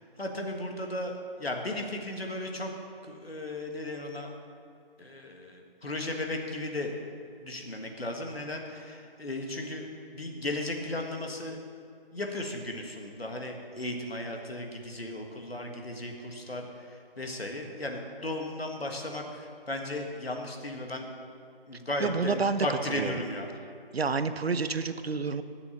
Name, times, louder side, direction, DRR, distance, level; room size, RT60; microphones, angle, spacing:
voice 1, 0.2-2.7 3.1-4.3 5.0-6.9 7.4-9.8 10.1-11.6 12.1-16.7 17.2-21.0 21.7-23.5, left 1 dB, 85° left, 2 dB, 1.7 m, -35 dB
voice 2, 22.0-23.2 23.9-25.4, right 4 dB, 90° right, 11 dB, 0.7 m, -29 dB
9.6 x 6.9 x 7.0 m, 2.4 s
figure-of-eight pair, 175°, 30 cm